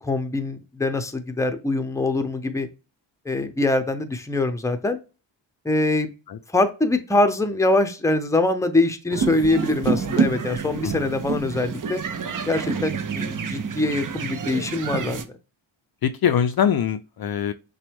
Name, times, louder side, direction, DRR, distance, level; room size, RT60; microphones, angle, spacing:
voice 1, 0.0-2.7 3.3-5.0 5.6-6.1 6.5-12.0 12.5-15.4, left 2 dB, 5° left, 0.6 m, -23 dB
sound 1, 9.1-15.3, right 5 dB, 40° right, 0.6 m, -27 dB
voice 2, 16.0-17.5, left 8 dB, 50° left, 0.5 m, -23 dB
5.9 x 2.3 x 3.4 m
cardioid pair, 80°, 48 cm